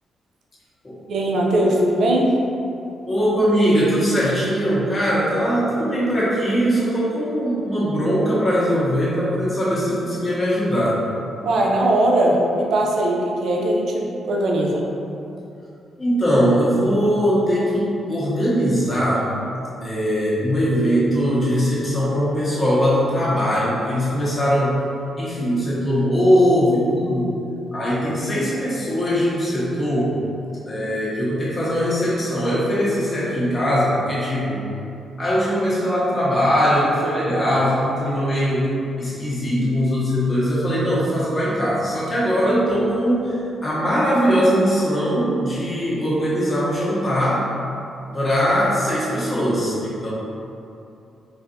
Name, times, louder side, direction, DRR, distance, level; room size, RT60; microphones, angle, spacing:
voice 1, 1.1-2.4 11.4-14.8, right 1 dB, 70° right, -1 dB, 0.5 m, -20 dB
voice 2, 3.0-11.0 16.0-19.3 19.8-24.9 25.2-27.3 27.7-30.2 30.6-34.7 35.2-47.5 48.1-50.1, equal, 35° left, -8 dB, 1.3 m, -21 dB
3.9 x 2.5 x 2.7 m, 2.7 s
supercardioid pair, 65°, 0 cm